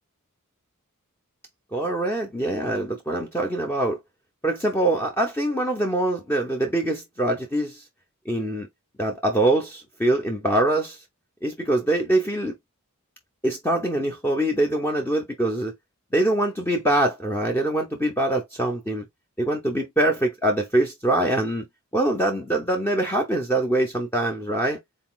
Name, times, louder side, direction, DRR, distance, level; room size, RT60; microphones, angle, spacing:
voice 1, 1.7-4.0 4.4-7.8 8.3-8.7 9.0-11.0 11.4-12.5 13.4-15.7 16.1-19.0 19.4-21.6 21.9-24.8, right 1 dB, 10° left, 0.7 m, -24 dB
4.0 x 4.0 x 2.3 m
head